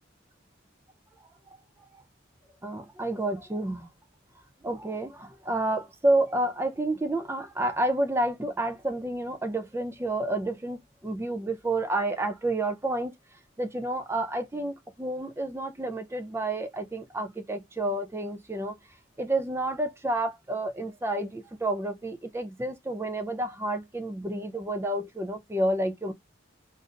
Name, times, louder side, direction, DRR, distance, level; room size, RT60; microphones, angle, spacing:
voice 1, 2.6-3.9 4.6-13.1 13.6-18.8 19.2-26.1, right 1 dB, 15° right, 0.4 m, -30 dB
4.0 x 2.5 x 2.4 m
head